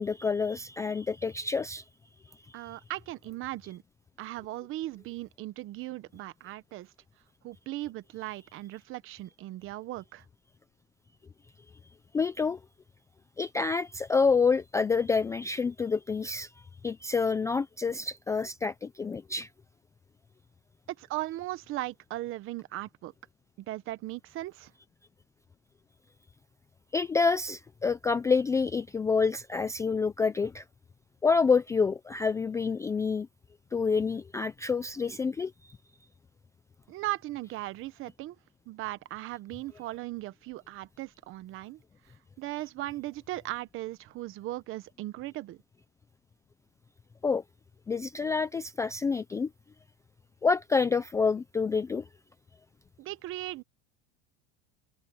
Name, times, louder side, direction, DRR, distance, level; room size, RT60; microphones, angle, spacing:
voice 1, 0.0-1.8 12.1-12.6 13.4-16.5 16.8-19.5 26.9-30.6 31.2-33.3 33.7-35.8 47.2-47.4 47.9-49.5 50.4-52.1, left 5 dB, 10° left, 0.4 m, -28 dB
voice 2, 2.5-3.8 4.2-6.9 7.4-10.3 20.9-23.1 23.6-24.7 36.9-38.4 38.7-41.8 42.4-45.6 53.0-53.6, right 16 dB, 40° right, 1.0 m, -38 dB
supercardioid pair, 155°, 33 cm